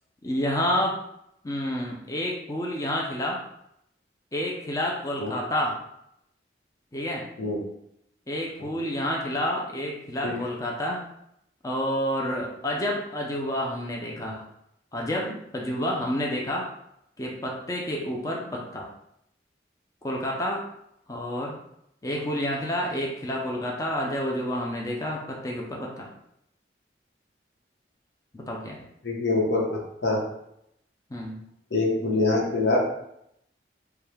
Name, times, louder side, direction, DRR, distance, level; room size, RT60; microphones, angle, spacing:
voice 1, 0.2-1.0 1.4-3.4 4.3-5.8 6.9-7.2 8.3-11.1 11.6-14.4 14.9-16.7 17.2-18.9 20.0-20.6 21.1-21.6 22.0-26.1 28.3-28.8 31.1-31.4, equal, 20° left, -2 dB, 0.5 m, -29 dB
voice 2, 29.0-30.2 31.7-32.8, left 2 dB, 90° left, -1 dB, 1.0 m, -24 dB
4.7 x 2.3 x 3.4 m, 0.78 s
head